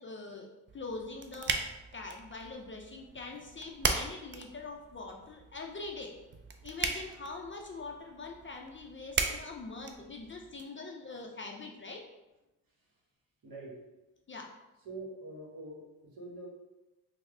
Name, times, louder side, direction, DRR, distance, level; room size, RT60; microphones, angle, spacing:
voice 1, 0.0-1.7 1.9-6.1 6.6-12.1 14.3-14.5, left 3 dB, 30° left, 1 dB, 0.4 m, -43 dB
sound 1, 0.7-10.6, right 5 dB, 30° right, 0.4 m, -38 dB
voice 2, 12.7-13.0 13.4-13.9 14.8-16.5, right 2 dB, 55° right, -2 dB, 1.1 m, -45 dB
3.1 x 2.1 x 3.6 m, 1.0 s
supercardioid pair, 50°, 42 cm